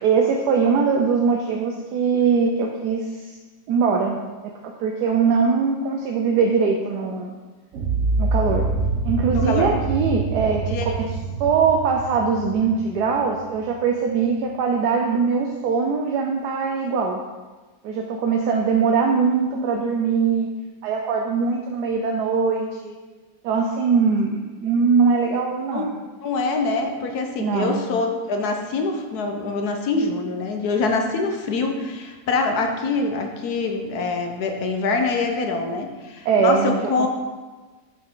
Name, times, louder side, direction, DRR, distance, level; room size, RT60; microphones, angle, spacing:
voice 1, 0.0-3.3 3.7-4.2 4.4-7.4 8.2-8.7 9.0-11.1 11.4-17.2 17.8-20.5 20.8-22.9 23.4-26.0 27.4-27.8 36.2-37.1, right 5 dB, 75° right, 1 dB, 1.2 m, -21 dB
sound 1, 7.7-13.8, right 3 dB, 50° right, 1.1 m, -26 dB
voice 2, 9.3-9.7 10.7-11.0 25.7-25.9 26.2-37.1, left 3 dB, 70° left, 4 dB, 1.3 m, -24 dB
7.9 x 5.6 x 3.7 m, 1.3 s
omnidirectional pair, 1.8 m